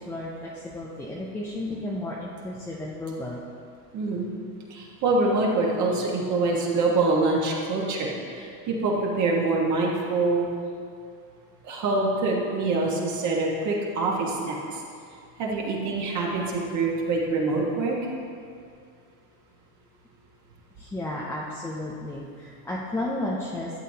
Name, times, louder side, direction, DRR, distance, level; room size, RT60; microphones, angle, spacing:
voice 1, 0.0-3.4 20.8-23.8, left 1 dB, 5° left, -5 dB, 0.4 m, -33 dB
voice 2, 3.9-4.3 4.7-10.5 11.6-14.8 15.4-18.0, right 3 dB, 40° right, -2 dB, 1.4 m, -25 dB
12.0 x 7.5 x 2.8 m, 2.3 s
supercardioid pair, 135°, 46 cm